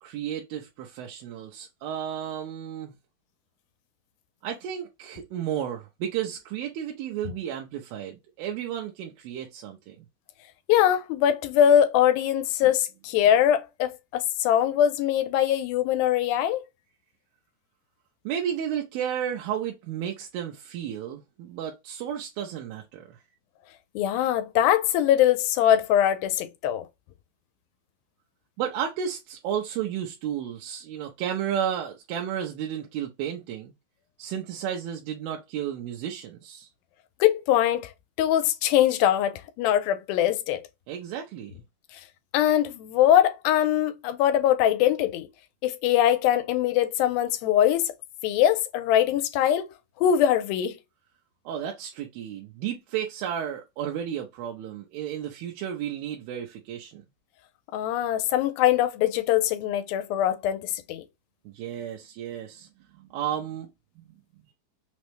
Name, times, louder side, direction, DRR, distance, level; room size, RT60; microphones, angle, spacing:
voice 1, 0.0-2.9 4.4-10.1 18.3-23.2 28.6-33.7 34.2-36.7 40.9-41.5 51.5-57.0 61.5-62.7 63.0-63.7 64.0-64.1, right 9 dB, 85° right, 2.5 m, -33 dB
voice 2, 10.7-16.6 24.0-26.9 37.2-37.9 38.2-40.6 42.3-45.3 45.6-47.9 48.2-49.7 50.0-50.8 57.7-61.0, left 11 dB, 85° left, 2.4 m, -22 dB
5.9 x 2.1 x 3.0 m
omnidirectional pair, 4.2 m